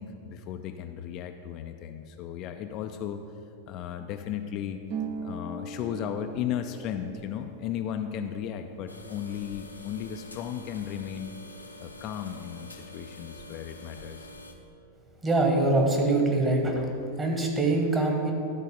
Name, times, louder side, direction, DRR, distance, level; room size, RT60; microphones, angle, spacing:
voice 1, 0.0-3.4 3.7-4.8 5.2-11.4 11.8-14.3, left 9 dB, 40° left, 6 dB, 0.3 m, -35 dB
Harp, 4.9-12.4 12.6-13.7 14.0-14.7, right 4 dB, 40° right, 0.5 m, -42 dB
sound 1, 8.9-14.5, left 2 dB, 85° left, 0.6 m, -46 dB
voice 2, 15.2-16.9 17.2-18.3, right 2 dB, 15° right, 1 dB, 1.2 m, -24 dB
11.5 x 4.1 x 5.1 m, 2.8 s
figure-of-eight pair, 90°, 0 cm